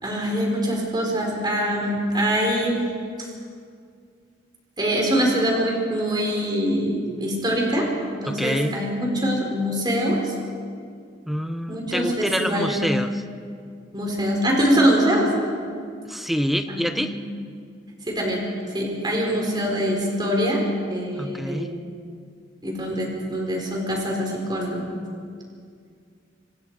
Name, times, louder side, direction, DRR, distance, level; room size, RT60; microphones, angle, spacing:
voice 1, 0.0-2.8 3.2-3.3 4.8-10.3 11.7-12.8 13.9-15.3 16.7-17.2 18.1-18.4 18.7-21.8 22.6-24.9, equal, 25° right, -1 dB, 4.8 m, -24 dB
voice 2, 8.3-8.7 11.3-13.1 16.1-17.1 21.2-21.7, equal, ahead, 7 dB, 1.0 m, -26 dB
27.0 x 25.0 x 5.0 m, 2.2 s
head